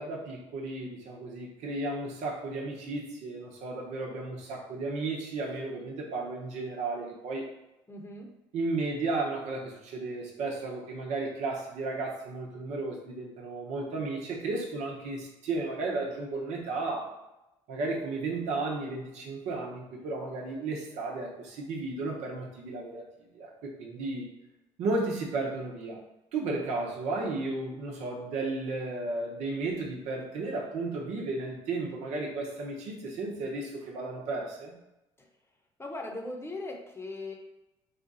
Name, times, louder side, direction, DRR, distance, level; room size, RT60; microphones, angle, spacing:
voice 1, 0.0-7.5 8.5-17.1 17.7-23.0 23.3-24.3 24.8-26.0 26.3-34.7, right 3 dB, 70° right, 0 dB, 1.0 m, -34 dB
voice 2, 7.9-8.3 35.2-35.3 35.8-37.3, left 2 dB, 20° left, 1 dB, 1.0 m, -39 dB
4.2 x 2.4 x 4.0 m, 0.95 s
hypercardioid pair, 65°, 12 cm